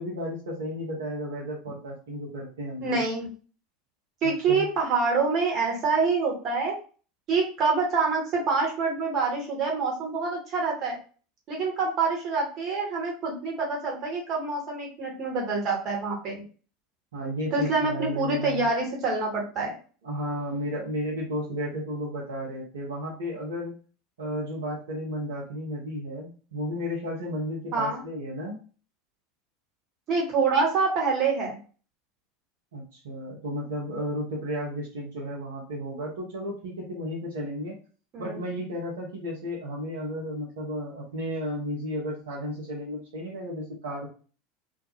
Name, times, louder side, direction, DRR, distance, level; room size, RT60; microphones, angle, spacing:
voice 1, 0.0-3.0 4.2-4.7 17.1-18.7 20.0-23.7 24.2-28.6 32.7-37.8 38.2-44.1, equal, 75° right, -4 dB, 0.8 m, -33 dB
voice 2, 2.8-3.3 4.2-6.7 7.3-11.0 11.5-16.4 17.5-19.7 27.7-28.0 30.1-31.6 38.1-38.4, right 4 dB, 45° right, 0 dB, 1.1 m, -26 dB
2.3 x 2.3 x 2.8 m, 0.38 s
figure-of-eight pair, 80°, 0 cm